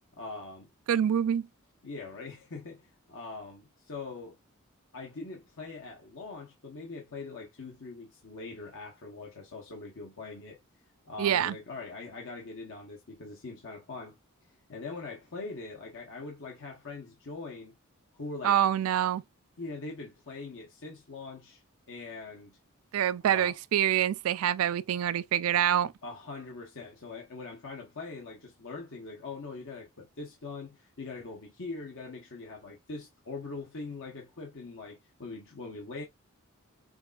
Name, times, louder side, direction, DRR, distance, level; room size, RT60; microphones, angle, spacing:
voice 1, 0.1-0.7 1.8-4.4 4.9-10.6 11.0-14.2 14.7-17.7 18.1-18.6 19.6-21.6 21.9-22.6 23.3-23.5 26.0-36.0, left 3 dB, 60° left, 1.0 m, -42 dB
voice 2, 0.9-1.5 11.2-11.6 18.4-19.2 22.9-25.9, right 10 dB, 70° right, 0.3 m, -26 dB
6.1 x 2.5 x 2.4 m
head